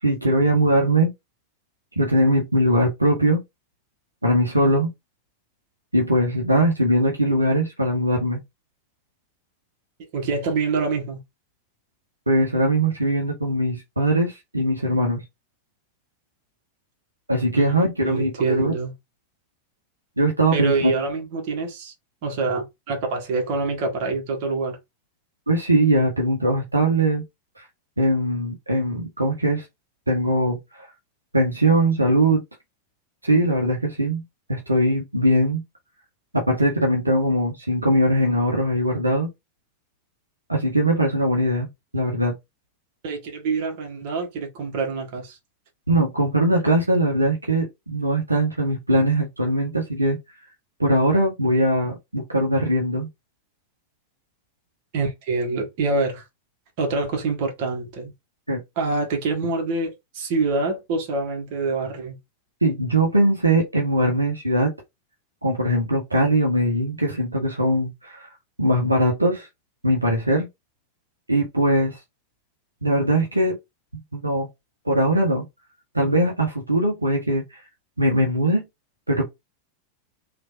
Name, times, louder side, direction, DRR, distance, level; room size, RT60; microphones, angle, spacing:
voice 1, 0.0-1.1 2.0-3.4 4.2-4.9 5.9-8.4 12.3-15.2 17.3-18.7 20.2-20.9 25.5-27.2 27.6-27.7 28.0-29.6 30.1-30.9 31.3-32.4 33.2-34.2 34.5-35.6 36.5-39.3 40.5-41.7 41.9-42.3 45.9-50.2 50.8-53.1 58.5-58.6 62.6-64.7 65.4-68.3 68.6-69.5 69.8-70.5 71.3-72.0 72.8-73.6 74.1-74.5 74.8-75.5 75.9-77.6 78.0-78.6 79.1-79.2, right 1 dB, 85° right, 0.8 m, -21 dB
voice 2, 10.1-11.2 17.5-17.8 18.0-18.9 20.5-21.9 22.2-24.8 43.0-45.4 54.9-56.2 56.8-58.1 58.8-62.2, right 3 dB, 45° right, 1.4 m, -26 dB
3.2 x 2.5 x 2.6 m
figure-of-eight pair, 90°, 0 cm